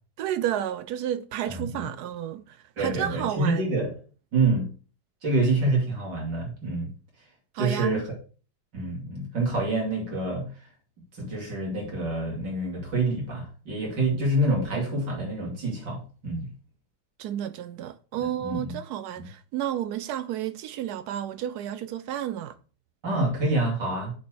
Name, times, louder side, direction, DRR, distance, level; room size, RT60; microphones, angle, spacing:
voice 1, 0.2-3.7 7.5-8.0 17.2-22.6, right 11 dB, 80° right, 0.8 m, -31 dB
voice 2, 1.5-1.9 2.8-3.9 4.3-4.7 5.2-6.9 7.6-8.0 8.7-10.5 11.2-16.5 18.2-18.8 19.1-19.3 23.0-24.1, right 2 dB, 60° right, 3.3 m, -27 dB
7.0 x 4.4 x 6.3 m
omnidirectional pair, 2.2 m